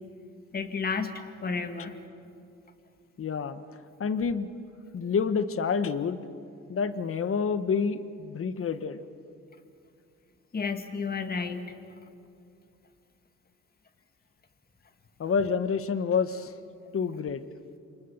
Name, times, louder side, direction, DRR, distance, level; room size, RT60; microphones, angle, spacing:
voice 1, 0.5-2.0 10.5-11.7, left 5 dB, 30° left, 5 dB, 2.2 m, -32 dB
voice 2, 3.2-3.6 4.0-4.5 4.9-6.2 6.7-9.0 15.2-16.5 16.9-17.4, left 6 dB, 45° left, 11 dB, 1.4 m, -28 dB
28.5 x 25.5 x 7.3 m, 2.5 s
cardioid pair, 90°, 30 cm